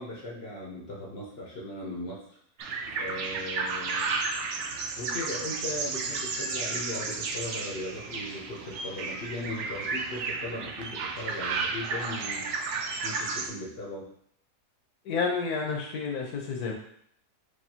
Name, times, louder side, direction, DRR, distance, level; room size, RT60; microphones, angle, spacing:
voice 1, 0.0-2.2 2.9-4.2 5.0-12.5 13.0-14.0, left 1 dB, 45° left, -4 dB, 0.9 m, -38 dB
sound 1, 2.6-13.5, right 4 dB, 75° right, 0.6 m, -33 dB
voice 2, 15.0-16.7, left 5 dB, 70° left, 0 dB, 1.3 m, -30 dB
5.0 x 2.8 x 2.8 m, 0.68 s
omnidirectional pair, 1.7 m